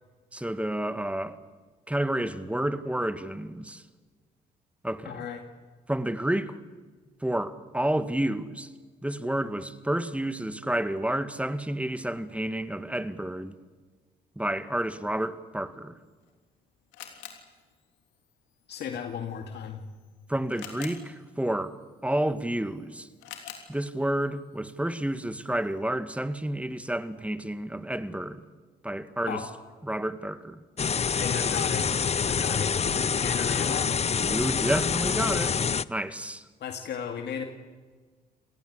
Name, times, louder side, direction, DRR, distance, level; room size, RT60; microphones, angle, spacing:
voice 1, 0.3-1.4 1.9-3.8 4.8-5.3 5.9-6.6 7.2-8.7 9.0-13.5 14.4-16.0 20.3-21.8 22.0-23.1 23.7-28.4 28.8-29.4 29.8-30.6 34.2-35.6 35.9-36.4, right 1 dB, 5° right, 2.0 m, -30 dB
voice 2, 5.1-5.4 18.7-19.8 29.3-29.5 31.1-33.9 36.6-37.5, left 7 dB, 65° left, 2.2 m, -35 dB
Camera, 16.0-25.8, left 10 dB, 90° left, 3.3 m, -50 dB
sound 1, 30.8-35.8, left 6 dB, 35° left, 0.6 m, -26 dB
28.5 x 18.5 x 8.2 m
supercardioid pair, 60°, 18 cm